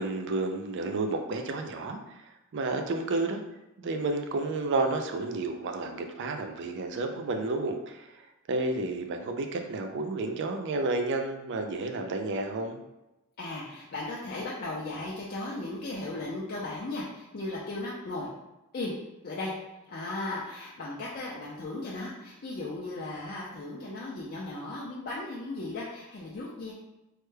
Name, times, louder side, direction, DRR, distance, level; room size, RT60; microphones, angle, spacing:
voice 1, 0.0-3.4 3.8-8.2 8.5-12.8, right 3 dB, 55° right, 4 dB, 0.4 m, -31 dB
voice 2, 13.4-18.3 18.7-18.9 19.2-19.5 19.9-26.7, left 2 dB, 45° left, -5 dB, 0.5 m, -36 dB
3.2 x 2.2 x 3.2 m, 0.99 s
head